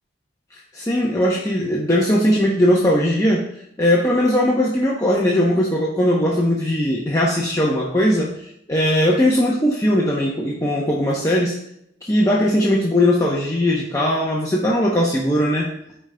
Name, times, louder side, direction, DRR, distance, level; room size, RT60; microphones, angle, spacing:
voice 1, 0.7-3.5 3.8-8.3 8.7-11.6 12.0-15.7, left 1 dB, 15° left, -4 dB, 0.7 m, -19 dB
11.5 x 5.0 x 2.2 m, 0.75 s
head